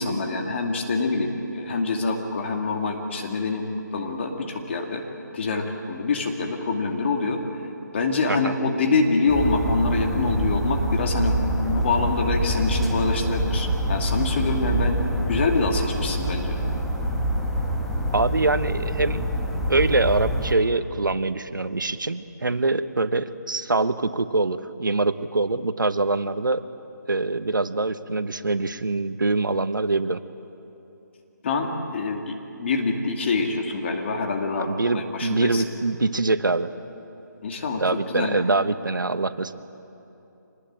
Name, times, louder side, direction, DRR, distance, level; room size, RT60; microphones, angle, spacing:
voice 1, 0.0-3.6 3.9-5.0 5.3-7.4 7.9-15.0 15.3-16.6 31.4-35.6 37.4-37.8 38.1-38.4, left 3 dB, 35° left, 2 dB, 2.6 m, -25 dB
sound 1, 9.3-20.5, equal, 5° left, 1.6 m, -26 dB
voice 2, 18.1-19.2 19.7-26.6 27.1-30.2 34.6-36.7 37.8-39.5, right 3 dB, 85° right, 12 dB, 1.2 m, -24 dB
25.0 x 20.0 x 8.8 m, 2.9 s
figure-of-eight pair, 160°, 10 cm